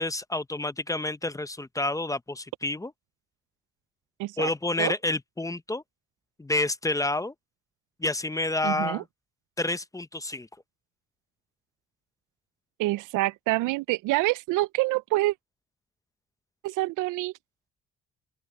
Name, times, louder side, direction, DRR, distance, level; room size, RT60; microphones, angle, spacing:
voice 1, 0.0-2.9 4.4-5.8 6.4-7.3 8.0-9.0 9.6-10.5, left 2 dB, 10° left, 0.7 m, -29 dB
voice 2, 4.2-4.5 4.8-4.9 8.6-9.0 12.8-15.3 16.6-17.3, right 18 dB, 90° right, 0.5 m, -26 dB
open air
cardioid pair, 90°, 30 cm